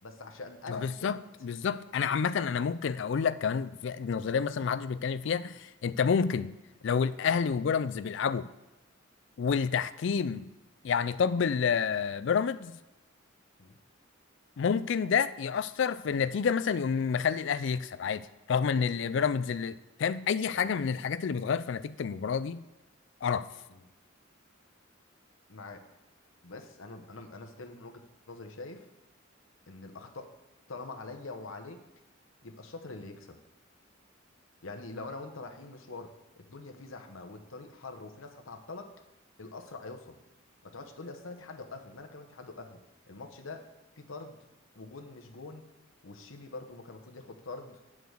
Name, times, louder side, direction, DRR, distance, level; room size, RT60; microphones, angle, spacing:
voice 1, 0.0-1.1 13.6-13.8 18.7-18.8 20.5-20.8 23.7-23.9 25.5-25.8 26.4-28.0 28.3-28.9 29.7-30.3 30.7-31.8 32.4-33.4 34.6-38.9 39.4-40.2 40.6-42.8 43.1-43.7 44.0-44.4 44.7-45.6 46.0-47.8, left 3 dB, 80° left, 1.0 m, -44 dB
voice 2, 0.7-6.6 6.8-8.5 9.4-10.5 10.8-12.8 14.6-22.6 23.2-23.5, left 6 dB, 60° left, 0.4 m, -29 dB
9.1 x 4.9 x 6.4 m
head